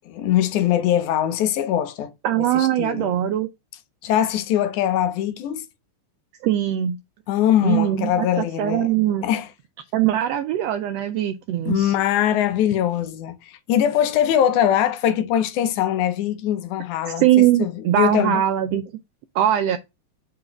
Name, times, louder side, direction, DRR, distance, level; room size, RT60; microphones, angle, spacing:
voice 1, 0.1-2.1 2.5-3.1 4.0-5.7 7.3-8.9 9.2-9.5 11.7-18.4, left 10 dB, 85° left, 2.2 m, -22 dB
voice 2, 2.2-3.5 6.4-7.0 7.6-9.2 9.9-11.9 17.1-18.8 19.3-19.8, right 12 dB, 85° right, 1.4 m, -21 dB
5.3 x 3.9 x 5.8 m
omnidirectional pair, 3.4 m